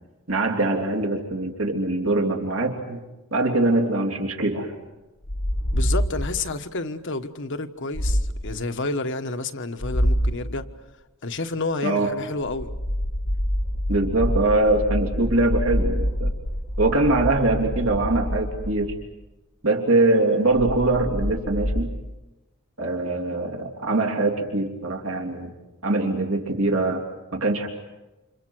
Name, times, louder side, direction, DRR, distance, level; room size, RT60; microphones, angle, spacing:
voice 1, 0.3-3.0 3.3-4.7 11.8-12.1 13.9-16.3 16.8-18.9 19.6-21.9 22.8-25.5 25.8-27.0 27.3-27.7, right 2 dB, 80° right, 3.2 m, -22 dB
sound 1, 5.2-6.5 7.9-8.5 9.8-10.5 12.4-19.1 20.5-21.8, equal, 90° left, 2.7 m, -26 dB
voice 2, 5.7-10.7 11.2-12.7, left 3 dB, 60° left, 1.4 m, -30 dB
29.0 x 27.5 x 6.3 m
head